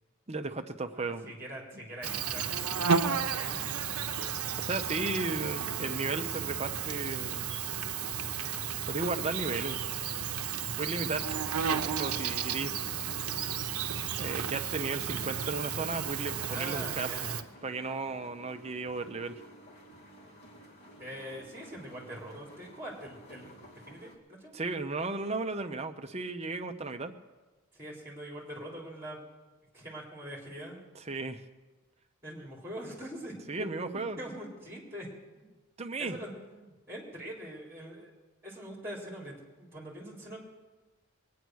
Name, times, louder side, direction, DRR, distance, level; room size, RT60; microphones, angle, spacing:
voice 1, 0.3-1.3 4.6-7.5 8.9-9.8 10.5-12.7 14.2-17.1 17.6-19.4 24.5-27.1 31.1-31.4 33.5-34.2 35.8-36.2, right 3 dB, 30° right, 7 dB, 0.7 m, -35 dB
voice 2, 0.9-4.4 16.5-17.4 21.0-24.5 27.7-29.2 29.7-30.8 32.2-33.4 33.9-35.1 35.3-35.6 36.0-38.1 38.4-40.4, equal, 10° right, -2 dB, 3.6 m, -43 dB
Insect, 2.0-17.4, right 7 dB, 85° right, 0.8 m, -33 dB
sound 1, 7.9-24.2, right 1 dB, 45° left, 2.0 m, -54 dB
21.5 x 9.4 x 6.3 m, 1.3 s
head